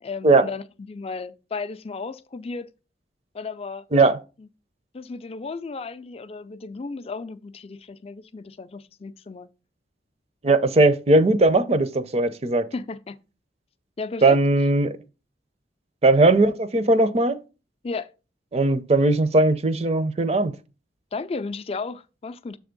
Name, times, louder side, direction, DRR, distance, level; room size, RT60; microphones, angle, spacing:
voice 1, 0.0-2.7 3.3-3.9 4.4-4.5 4.9-9.5 12.7-13.2 14.0-14.4 17.8-18.1 21.1-22.6, left 4 dB, 35° left, 0.4 m, -34 dB
voice 2, 10.4-12.6 14.2-14.9 16.0-17.4 18.5-20.5, right 2 dB, 35° right, 0.5 m, -18 dB
7.2 x 3.5 x 5.1 m
head